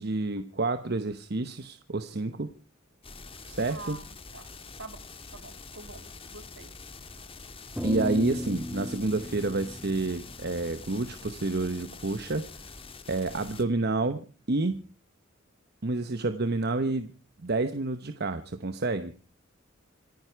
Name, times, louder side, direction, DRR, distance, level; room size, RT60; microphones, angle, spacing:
voice 1, 0.0-2.5 3.4-4.0 7.8-12.5 13.1-14.9 15.8-17.1 17.4-19.1, right 2 dB, 55° right, 10 dB, 1.0 m, -29 dB
sound 1, 3.0-13.6, left 4 dB, 30° left, 1.6 m, -46 dB
voice 2, 3.7-5.0 5.3-6.7, right 3 dB, 70° right, 9 dB, 2.3 m, -46 dB
sound 2, 7.7-12.3, left 1 dB, 5° right, 2.1 m, -37 dB
26.5 x 9.7 x 4.6 m, 0.37 s
head